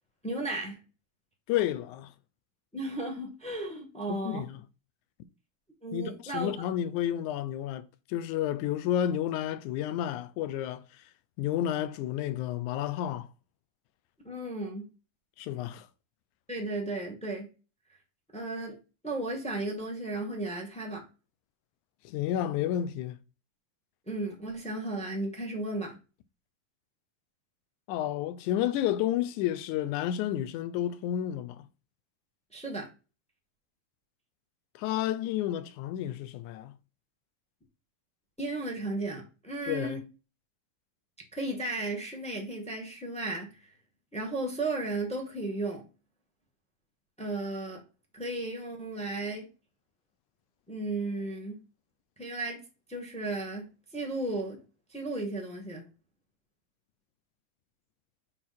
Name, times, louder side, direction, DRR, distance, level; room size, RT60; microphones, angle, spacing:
voice 1, 0.2-0.8 2.7-4.5 5.8-6.6 14.2-14.9 16.5-17.5 18.3-18.8 19.0-21.0 24.1-25.9 32.5-32.9 38.4-40.0 41.3-43.7 44.1-45.8 47.2-47.8 48.1-49.5 50.7-51.6 52.2-52.6 52.9-54.6 54.9-55.8, right 2 dB, 10° left, 0.3 m, -34 dB
voice 2, 1.5-2.1 4.1-4.6 5.9-10.8 11.4-13.3 15.4-15.9 22.1-23.2 27.9-31.7 34.8-36.7 39.7-40.0, left 11 dB, 75° left, 2.0 m, -31 dB
6.7 x 5.7 x 4.2 m
omnidirectional pair, 3.9 m